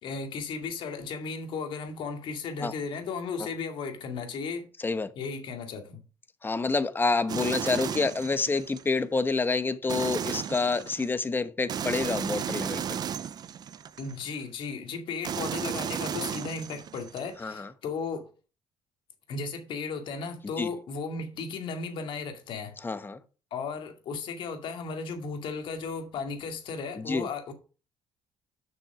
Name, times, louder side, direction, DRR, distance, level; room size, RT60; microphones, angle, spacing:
voice 1, 0.0-4.7 5.2-6.0 14.0-18.3 19.3-22.7 23.5-27.5, left 4 dB, 65° left, 2.2 m, -35 dB
voice 2, 6.4-13.0 17.4-17.7 20.6-20.7 22.8-23.2 27.0-27.3, left 3 dB, 20° left, 1.0 m, -28 dB
sound 1, 7.3-8.8 9.9-11.1 11.7-14.3 15.2-17.2, right 8 dB, 45° right, 0.6 m, -34 dB
7.5 x 6.0 x 5.0 m
supercardioid pair, 80°, 9 cm